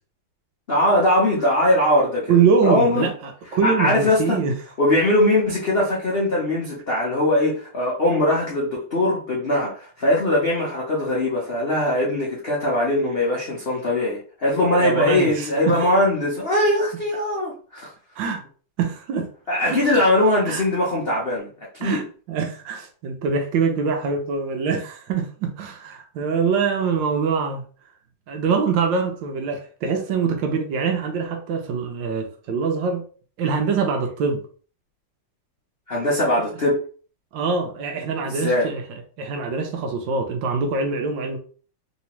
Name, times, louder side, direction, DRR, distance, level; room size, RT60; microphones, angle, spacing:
voice 1, 0.7-2.4 2.6-3.1 3.6-4.4 4.8-17.9 19.5-21.5 21.8-22.0 35.9-36.8 38.2-38.7, left 1 dB, 75° left, 0.5 m, -21 dB
voice 2, 2.3-4.5 14.8-15.9 18.2-18.4 18.8-19.3 19.6-19.9 20.5-20.6 21.8-27.6 28.3-33.1 33.4-34.4 37.3-41.4, right 5 dB, 70° right, 1.2 m, -24 dB
3.3 x 3.0 x 2.9 m
omnidirectional pair, 2.3 m